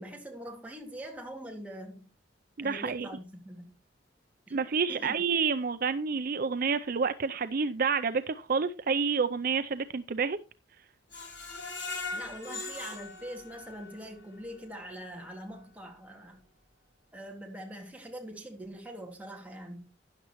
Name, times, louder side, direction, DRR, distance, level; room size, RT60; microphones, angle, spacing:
voice 1, 0.0-2.1 2.6-3.8 4.5-4.6 4.9-5.1 12.1-16.5 17.1-19.9, right 1 dB, 10° right, 2.3 m, -43 dB
voice 2, 2.6-3.1 4.5-10.4, right 5 dB, 50° right, 0.5 m, -29 dB
Screech, 11.1-14.1 14.5-14.6 15.0-15.1, left 3 dB, 70° left, 6.9 m, -39 dB
12.5 x 10.0 x 3.0 m
head